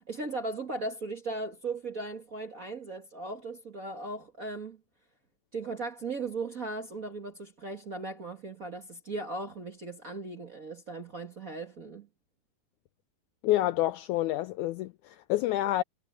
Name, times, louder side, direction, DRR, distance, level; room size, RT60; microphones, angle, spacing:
voice 1, 0.1-4.8 5.5-12.1, right 3 dB, 35° right, 1.4 m, -37 dB
voice 2, 13.4-15.8, left 15 dB, 80° left, 1.8 m, -28 dB
omnidirectional pair, 3.9 m